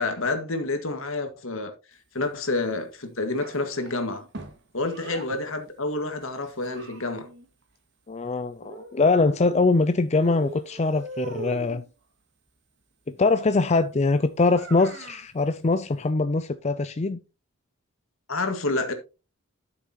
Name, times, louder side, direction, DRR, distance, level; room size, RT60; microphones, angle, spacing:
voice 1, 0.0-1.7 2.1-4.2 4.7-7.3 18.3-18.9, left 2 dB, 70° left, 1.8 m, -28 dB
Child speech kid speaking, 3.3-5.3 6.2-7.5 8.6-9.8 10.1-11.9 14.4-15.3, right 2 dB, 55° right, 1.9 m, -41 dB
voice 2, 8.1-11.8 13.1-17.2, left 3 dB, 30° left, 0.5 m, -23 dB
12.5 x 6.9 x 3.0 m
head